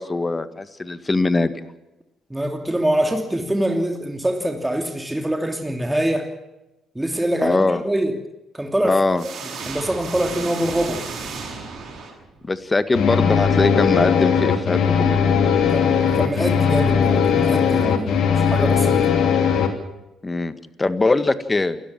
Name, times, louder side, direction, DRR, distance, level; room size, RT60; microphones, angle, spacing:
voice 1, 0.0-1.5 7.4-7.8 8.8-9.2 12.4-15.2 20.2-20.5 20.8-21.8, left 3 dB, 25° left, 12 dB, 1.8 m, -21 dB
voice 2, 2.3-6.3 6.9-8.2 8.5-9.0 9.7-11.0 15.7-19.1, right 1 dB, 10° right, 4 dB, 2.9 m, -24 dB
sound 1, 9.2-12.5, right 4 dB, 60° right, 7.3 m, -33 dB
sound 2, 12.9-19.7, left 7 dB, 60° left, 3.0 m, -18 dB
28.0 x 14.0 x 7.4 m, 0.97 s
hypercardioid pair, 50°, 0 cm